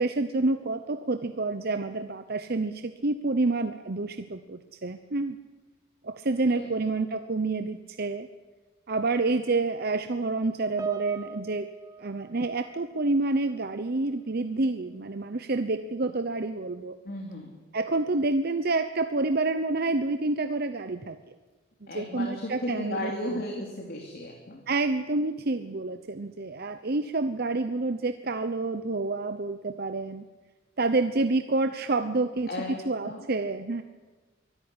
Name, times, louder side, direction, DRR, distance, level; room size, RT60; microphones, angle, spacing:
voice 1, 0.0-5.4 6.0-8.3 8.9-11.7 12.0-17.0 17.7-21.3 21.9-23.4 24.7-30.2 30.8-32.5 32.9-33.8, right 3 dB, 50° right, 9 dB, 0.8 m, -28 dB
Piano, 10.8-13.4 13.7-14.0 14.8-14.9, right 3 dB, 15° right, 0.8 m, -41 dB
voice 2, 17.0-17.5 21.9-24.7 32.5-33.3, left 1 dB, 50° left, 0 dB, 3.1 m, -35 dB
24.0 x 13.5 x 9.9 m, 1.3 s
head